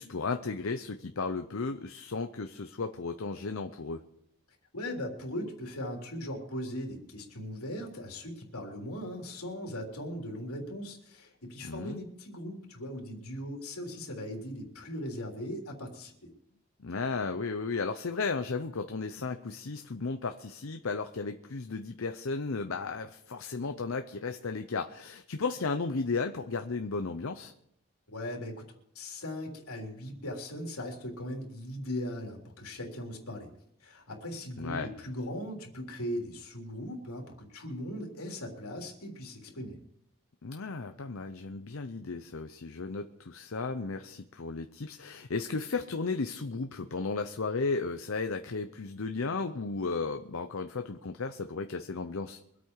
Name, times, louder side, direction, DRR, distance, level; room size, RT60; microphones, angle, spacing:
voice 1, 0.0-4.0 11.6-12.0 16.8-27.5 34.6-34.9 40.4-52.4, left 4 dB, 70° left, 7 dB, 0.7 m, -34 dB
voice 2, 4.7-16.1 28.1-28.6 29.0-33.5 33.8-39.8, left 1 dB, 85° left, 0 dB, 3.5 m, -39 dB
24.0 x 8.6 x 4.7 m, 0.76 s
head